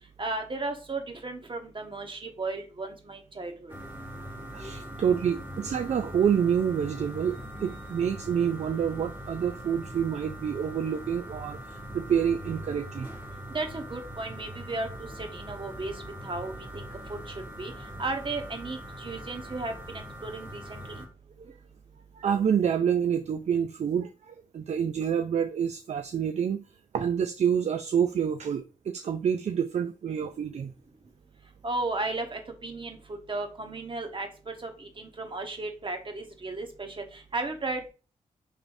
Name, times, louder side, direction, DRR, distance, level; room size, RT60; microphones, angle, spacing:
voice 1, 0.2-3.8 13.5-15.9 16.2-17.7 18.0-21.0 31.6-37.9, right 2 dB, 35° right, 1.0 m, -35 dB
sound 1, 3.7-21.1, equal, 15° right, 1.8 m, -41 dB
voice 2, 4.5-13.1 21.5-21.6 22.1-26.7 26.9-30.7, right 8 dB, 50° right, 0.4 m, -28 dB
4.9 x 3.0 x 2.6 m
supercardioid pair, 45°, 14 cm